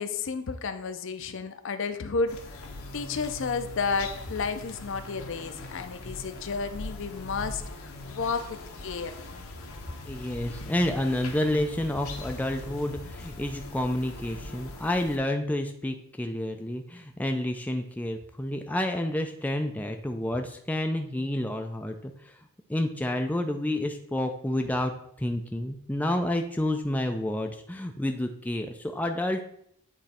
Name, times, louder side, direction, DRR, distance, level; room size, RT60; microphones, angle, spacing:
voice 1, 0.0-2.6 2.9-9.1, left 4 dB, 60° left, 9 dB, 0.5 m, -32 dB
sound 1, 2.3-15.2, left 2 dB, 80° left, 0.9 m, -41 dB
voice 2, 10.1-22.3 22.7-24.9 25.2-29.4, left 1 dB, 5° left, 4 dB, 0.3 m, -29 dB
8.9 x 3.1 x 4.2 m, 0.68 s
head